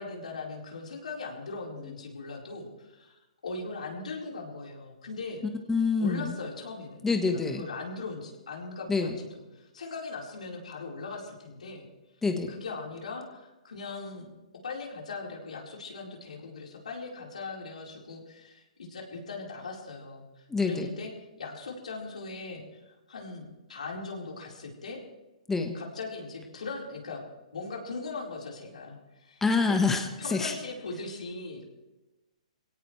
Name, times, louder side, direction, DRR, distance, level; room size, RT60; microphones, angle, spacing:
voice 1, 0.0-5.4 6.0-11.9 12.5-14.3 14.6-21.1 21.4-22.6 23.1-25.0 25.7-27.2 27.5-29.8 30.2-31.7, left 3 dB, 80° left, -1 dB, 4.4 m, -40 dB
voice 2, 5.7-6.3 7.0-7.7 8.9-9.2 12.2-12.5 20.5-20.9 25.5-25.8 29.4-30.5, left 4 dB, 10° left, 4 dB, 1.3 m, -26 dB
23.0 x 17.0 x 3.3 m, 1.1 s
hypercardioid pair, 135°, 4 cm